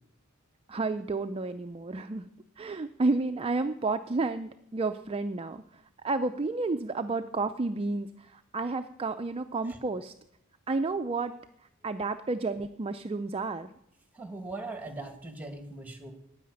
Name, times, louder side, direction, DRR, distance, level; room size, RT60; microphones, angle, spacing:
voice 1, 0.7-2.3 2.6-10.1 10.7-11.3 11.8-13.7, right 3 dB, 25° right, 8 dB, 0.4 m, -31 dB
voice 2, 14.1-16.1, right 2 dB, 5° right, 6 dB, 1.8 m, -40 dB
9.8 x 8.5 x 9.5 m, 0.76 s
head